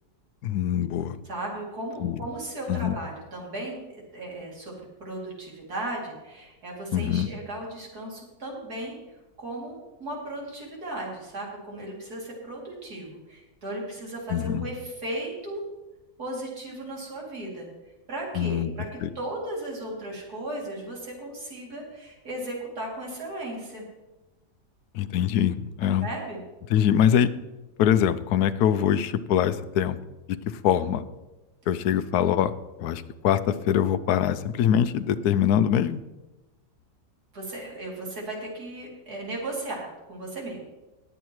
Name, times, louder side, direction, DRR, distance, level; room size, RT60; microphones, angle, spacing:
voice 1, 0.4-1.2 2.0-2.2 2.7-3.0 6.9-7.3 14.3-14.7 18.3-18.7 19.0-19.1 24.9-26.1 26.7-27.3 27.8-30.0 30.3-30.4 30.6-31.0 31.7-32.5 32.8-36.0, left 9 dB, 75° left, 14 dB, 1.0 m, -23 dB
voice 2, 1.2-9.0 9.4-15.6 16.2-17.7 18.1-23.8 25.8-26.4 37.3-40.6, right 1 dB, 65° right, -3 dB, 3.3 m, -36 dB
19.5 x 8.1 x 3.1 m, 1.1 s
omnidirectional pair, 1.7 m